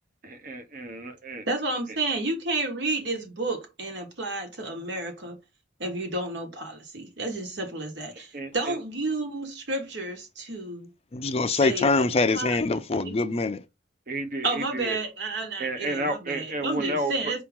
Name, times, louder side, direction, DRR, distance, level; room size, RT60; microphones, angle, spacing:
voice 1, 0.2-1.5 8.3-8.8 14.1-15.0 15.6-17.3, right 2 dB, 50° right, 0.9 m, -32 dB
voice 2, 1.5-5.4 5.8-10.9 11.5-11.9 12.3-12.6 13.0-13.2 14.4-17.4, right 2 dB, 70° right, 1.4 m, -31 dB
voice 3, 11.1-13.6, left 3 dB, 35° left, 0.5 m, -24 dB
4.8 x 3.0 x 3.5 m
head